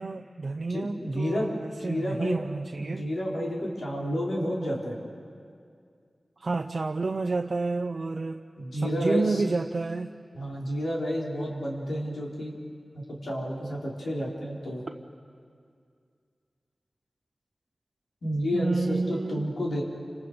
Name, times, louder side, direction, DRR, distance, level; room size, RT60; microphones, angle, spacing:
voice 1, 0.0-3.0 6.4-8.4 8.8-10.1 18.5-19.5, right 3 dB, 60° right, 5 dB, 0.6 m, -30 dB
voice 2, 0.7-1.5 1.8-2.4 2.8-5.0 8.6-9.4 10.3-12.6 12.9-14.8 18.2-19.8, equal, 85° left, -3 dB, 4.9 m, -30 dB
29.5 x 27.5 x 5.2 m, 2.2 s
wide cardioid pair, 85°, 0 cm